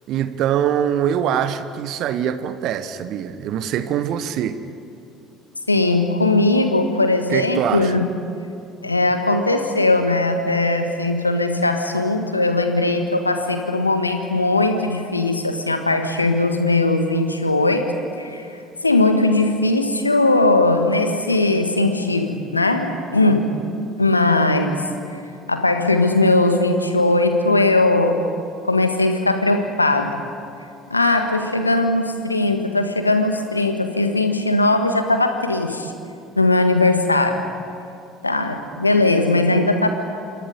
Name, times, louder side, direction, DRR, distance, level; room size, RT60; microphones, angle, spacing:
voice 1, 0.1-4.6 7.3-8.0, right 9 dB, 50° right, 12 dB, 1.1 m, -23 dB
voice 2, 5.7-8.1 8.8-23.5 24.0-25.2 25.5-28.2 28.6-30.2 30.9-35.9 36.3-37.5 38.2-39.9, left 2 dB, 85° left, 6 dB, 1.5 m, -19 dB
27.5 x 25.0 x 5.3 m, 2.6 s
figure-of-eight pair, 60°, 0 cm